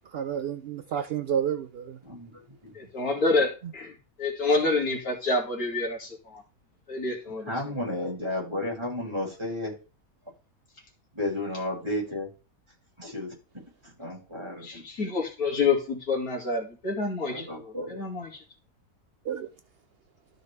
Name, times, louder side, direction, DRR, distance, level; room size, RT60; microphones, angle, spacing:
voice 1, 0.1-2.0 19.2-19.5, right 8 dB, 70° right, 0.5 m, -30 dB
voice 2, 2.0-2.9 7.5-9.7 11.1-12.3 13.0-13.3 13.8-14.9 17.2-18.0, left 1 dB, 15° right, 5.6 m, -33 dB
voice 3, 2.7-6.4 6.9-7.5 14.3-18.4, left 3 dB, 70° left, 2.8 m, -28 dB
13.0 x 6.4 x 3.4 m
omnidirectional pair, 1.6 m